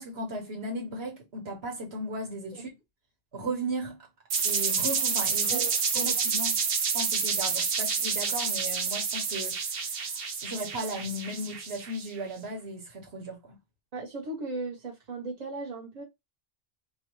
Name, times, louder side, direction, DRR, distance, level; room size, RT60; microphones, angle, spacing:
voice 1, 0.0-2.7 3.3-4.0 4.4-5.7 5.9-6.6 6.9-9.8 10.4-13.6, right 1 dB, 80° right, 1.5 m, -36 dB
sound 1, 4.3-12.1, right 5 dB, 65° right, 1.0 m, -29 dB
voice 2, 5.5-6.1 13.9-16.0, right 3 dB, 40° right, 1.3 m, -37 dB
4.6 x 2.3 x 3.1 m
omnidirectional pair, 1.1 m